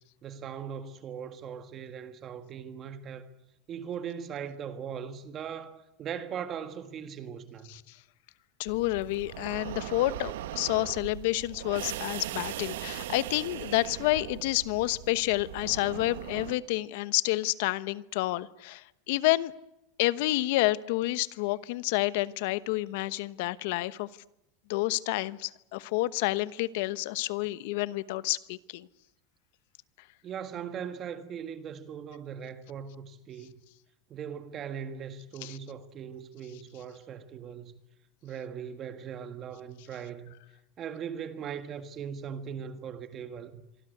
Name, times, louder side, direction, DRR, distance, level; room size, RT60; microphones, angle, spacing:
voice 1, 0.2-3.3 3.7-7.7 30.2-33.5 34.1-37.7 38.2-40.4 40.8-43.6, right 8 dB, 30° right, 1.7 m, -39 dB
voice 2, 8.6-19.5 20.0-24.1 24.7-28.9 35.4-35.6, left 18 dB, 65° left, 1.0 m, -29 dB
sound 1, 8.7-16.5, right 13 dB, 80° right, 1.4 m, -39 dB
26.0 x 24.0 x 8.1 m
supercardioid pair, 135°, 0 cm